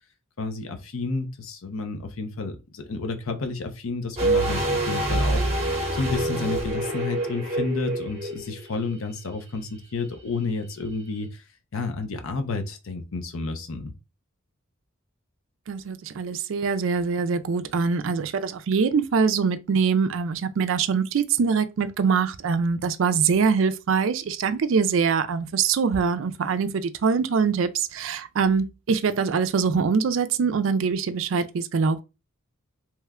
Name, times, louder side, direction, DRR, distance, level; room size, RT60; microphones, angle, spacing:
voice 1, 0.4-5.5 5.9-13.9, left 3 dB, 75° left, 0.6 m, -31 dB
sound 1, 4.2-9.0 9.3-9.4, right 1 dB, 30° right, 0.8 m, -26 dB
voice 2, 15.7-32.0, right 5 dB, 65° right, 0.4 m, -23 dB
3.0 x 2.2 x 3.5 m
head